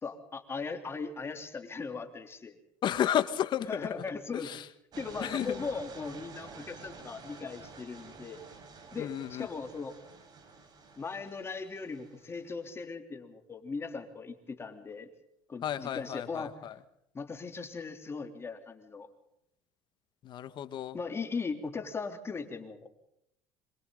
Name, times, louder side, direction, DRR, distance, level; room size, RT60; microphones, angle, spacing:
voice 1, 0.0-2.6 3.7-4.6 5.0-8.4 8.9-10.0 11.0-15.1 15.5-16.6 17.1-19.1 20.9-22.9, left 4 dB, 25° left, 5 dB, 3.5 m, -38 dB
voice 2, 2.8-3.9 4.3-4.6 5.2-5.6 9.0-9.5 15.6-16.7 20.2-21.0, left 10 dB, 50° left, 12 dB, 1.8 m, -32 dB
sound 1, 4.9-12.6, right 4 dB, 45° right, 5.9 m, -50 dB
26.5 x 26.0 x 4.0 m, 0.78 s
supercardioid pair, 105°, 10 cm